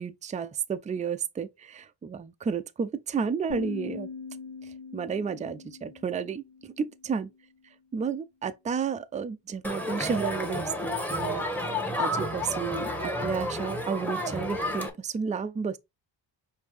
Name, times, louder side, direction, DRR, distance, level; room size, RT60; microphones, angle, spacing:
voice 1, 0.0-4.1 4.9-7.3 7.9-11.4 12.0-15.8, right 6 dB, 20° right, 0.3 m, -32 dB
sound 1, 3.5-7.4, left 5 dB, 75° left, 0.9 m, -42 dB
Crowd, 9.6-14.9, left 1 dB, 5° left, 1.0 m, -31 dB
5.2 x 2.8 x 3.2 m
cardioid pair, 90°, 46 cm